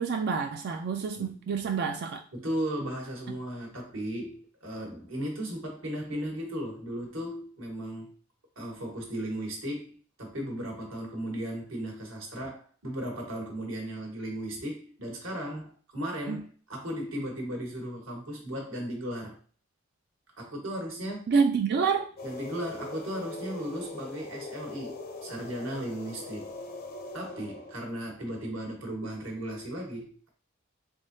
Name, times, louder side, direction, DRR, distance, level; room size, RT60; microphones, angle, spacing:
voice 1, 0.0-2.2 16.3-16.4 21.3-22.1, right 5 dB, 55° right, 0.3 m, -27 dB
voice 2, 2.3-8.1 8.6-19.4 20.4-21.3 22.2-26.5 27.1-30.3, right 1 dB, 70° right, 1.4 m, -36 dB
sound 1, 22.2-27.7, left 2 dB, 50° left, 0.5 m, -42 dB
3.6 x 3.5 x 2.7 m
head